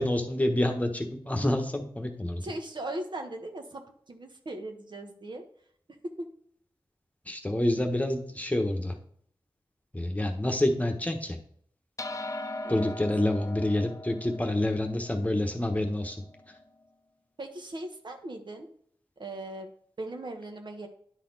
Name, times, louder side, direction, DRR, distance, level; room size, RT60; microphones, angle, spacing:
voice 1, 0.0-2.4 7.3-9.0 9.9-11.4 12.7-16.2, left 1 dB, 15° left, 3 dB, 1.1 m, -28 dB
voice 2, 2.4-5.4 6.2-6.3 12.6-12.9 17.4-18.7 19.2-19.7 20.0-20.9, right 1 dB, 55° right, 4 dB, 1.2 m, -39 dB
sound 1, 12.0-16.6, left 1 dB, 35° left, 0.6 m, -40 dB
9.9 x 4.2 x 4.0 m, 0.62 s
cardioid pair, 50°, 9 cm